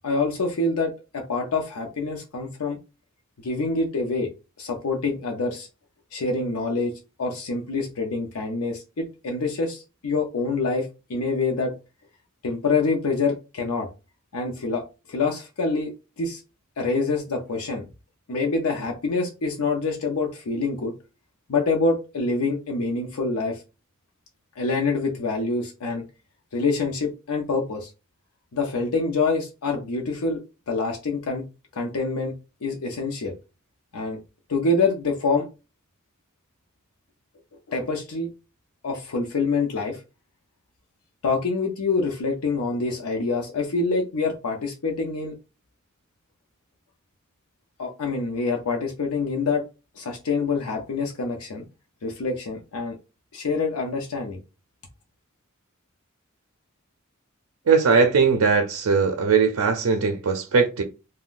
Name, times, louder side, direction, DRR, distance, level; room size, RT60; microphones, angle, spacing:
voice 1, 0.0-2.8 3.4-4.3 4.6-5.7 6.1-6.9 7.2-11.8 12.4-13.9 14.3-14.8 15.1-15.9 16.2-16.4 16.8-17.9 18.3-20.9 21.5-23.6 24.6-26.0 26.5-27.9 28.5-30.4 30.7-31.4 31.7-32.3 32.6-33.3 33.9-34.2 34.5-35.5 37.7-38.3 38.8-40.0 41.2-45.3 47.8-49.6 50.0-51.6 52.0-53.0 53.3-54.4, left 3 dB, 80° left, 0.6 m, -26 dB
voice 2, 57.7-60.8, right 5 dB, 70° right, 0.4 m, -20 dB
2.4 x 2.2 x 3.6 m
head